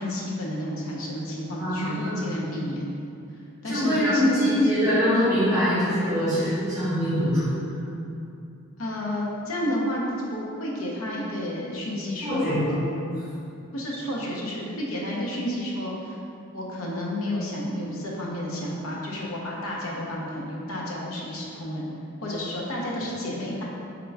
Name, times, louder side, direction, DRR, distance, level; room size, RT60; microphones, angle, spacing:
voice 1, 0.0-2.9 3.6-4.6 8.8-10.0 10.3-13.2 13.7-16.2 16.5-21.9 22.2-23.6, left 1 dB, 85° left, -3 dB, 0.8 m, -31 dB
voice 2, 1.6-2.4 3.7-7.6 12.2-12.6, equal, 15° right, -13 dB, 1.1 m, -23 dB
3.7 x 3.5 x 3.3 m, 2.6 s
head